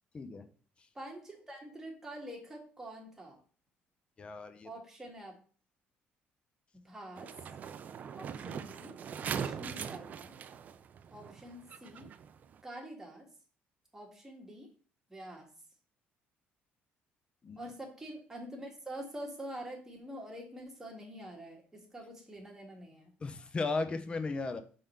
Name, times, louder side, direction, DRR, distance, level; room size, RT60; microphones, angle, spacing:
voice 1, 0.1-0.5 4.2-4.7 17.4-17.7 23.2-24.6, left 3 dB, 25° left, 9 dB, 0.7 m, -36 dB
voice 2, 1.0-3.4 4.6-5.3 6.9-7.3 8.1-8.9 9.2-10.3 11.1-12.1 12.6-13.3 13.9-14.7 15.1-15.5 17.6-21.6 21.9-23.1, right 1 dB, 10° right, 0 dB, 1.7 m, -46 dB
sound 1, 7.2-12.6, right 7 dB, 40° right, 0.4 m, -41 dB
4.9 x 3.8 x 5.6 m, 0.41 s
cardioid pair, 145°, 4 cm